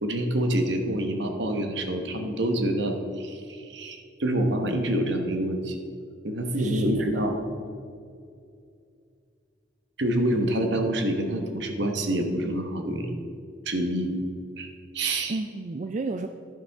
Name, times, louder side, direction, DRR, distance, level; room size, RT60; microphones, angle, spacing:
voice 1, 0.0-5.8 6.2-7.4 10.0-13.2 13.6-14.1 14.6-14.7 14.9-15.4, right 1 dB, 70° right, 4 dB, 1.2 m, -27 dB
voice 2, 6.6-7.3 15.3-16.3, right 3 dB, 40° right, 7 dB, 0.3 m, -33 dB
11.0 x 10.0 x 3.5 m, 2.4 s
head